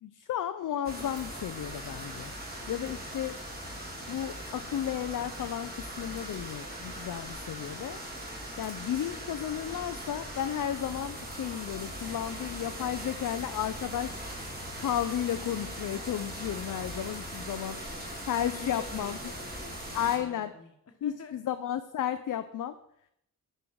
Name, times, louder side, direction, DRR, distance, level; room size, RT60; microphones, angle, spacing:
voice 1, 0.0-2.3 2.7-3.4 4.1-8.0 8.6-14.3 14.8-17.8 18.3-19.2 19.9-20.5 21.0-22.8, left 10 dB, 60° left, 10 dB, 0.5 m, -33 dB
sound 1, 0.8-20.2, right 1 dB, 25° right, 2.9 m, -40 dB
voice 2, 17.6-18.2 18.5-20.7 21.0-21.4, left 4 dB, 40° left, 6 dB, 1.3 m, -47 dB
9.9 x 5.5 x 4.6 m, 0.77 s
cardioid pair, 80°, 36 cm